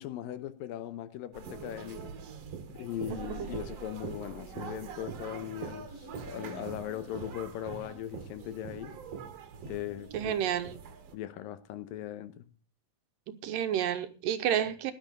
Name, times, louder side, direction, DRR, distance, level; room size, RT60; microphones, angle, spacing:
voice 1, 0.0-2.1 2.7-9.0 9.6-10.6 11.1-12.5, left 12 dB, 80° left, 2.6 m, -39 dB
sound 1, 1.3-11.2, right 6 dB, 55° right, 2.2 m, -43 dB
voice 2, 10.1-10.8 13.3-14.9, right 10 dB, 75° right, 2.5 m, -30 dB
15.5 x 11.0 x 4.1 m
omnidirectional pair, 4.1 m